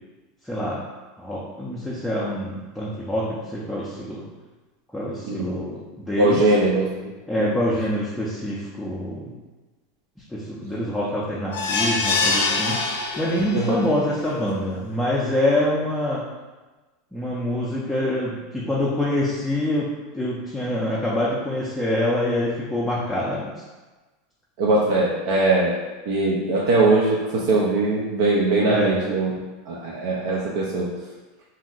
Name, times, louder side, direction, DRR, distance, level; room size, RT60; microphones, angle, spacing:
voice 1, 0.4-0.8 1.2-4.2 4.9-6.4 7.3-9.4 10.3-16.2 17.1-23.5 28.7-29.0, left 1 dB, 5° left, -7 dB, 0.5 m, -25 dB
voice 2, 6.2-7.1 7.4-7.5 13.5-13.8 24.6-25.7 26.1-29.3 29.7-30.9, right 2 dB, 65° right, -5 dB, 0.5 m, -21 dB
sound 1, 11.5-13.8 14.2-14.3 14.7-14.8, left 3 dB, 85° left, 0.4 m, -24 dB
2.6 x 2.0 x 3.9 m, 1.2 s
supercardioid pair, 130°, 0 cm